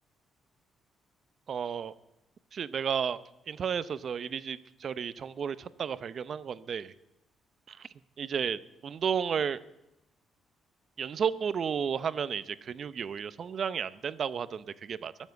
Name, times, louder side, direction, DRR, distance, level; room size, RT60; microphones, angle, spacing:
voice 1, 1.5-1.9 2.5-6.9 7.7-7.9 8.2-9.6 11.0-15.1, right 7 dB, 55° right, 15 dB, 0.7 m, -33 dB
22.0 x 7.3 x 7.9 m, 0.92 s
cardioid pair, 90°, 0 cm